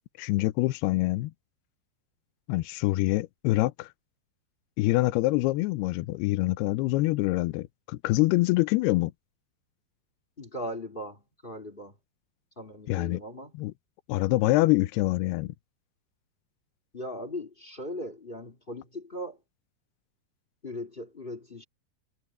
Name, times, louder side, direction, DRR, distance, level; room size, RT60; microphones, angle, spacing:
voice 1, 0.2-1.3 2.5-3.9 4.8-9.1 12.9-13.2 13.6-13.7 14.1-15.5, left 19 dB, 80° left, 2.5 m, -25 dB
voice 2, 10.4-12.0 12.5-13.5 16.9-19.4 20.6-21.6, left 1 dB, 25° left, 1.1 m, -38 dB
omnidirectional pair, 4.9 m